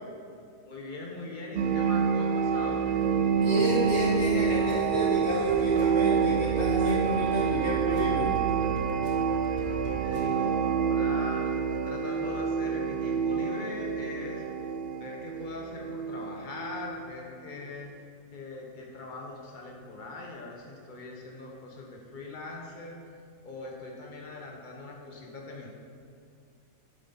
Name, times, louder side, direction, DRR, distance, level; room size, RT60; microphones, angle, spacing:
voice 1, 0.7-3.0 9.4-14.4 15.0-17.9 18.3-23.0 23.4-25.7, left 2 dB, 35° left, -1 dB, 1.4 m, -41 dB
sound 1, 1.6-17.0, right 6 dB, 85° right, 0.4 m, -27 dB
voice 2, 3.0-8.3, equal, 50° left, -4 dB, 1.3 m, -30 dB
sound 2, 3.3-10.5, right 2 dB, 70° right, 1.4 m, -44 dB
8.9 x 8.0 x 4.2 m, 2.4 s
omnidirectional pair, 1.5 m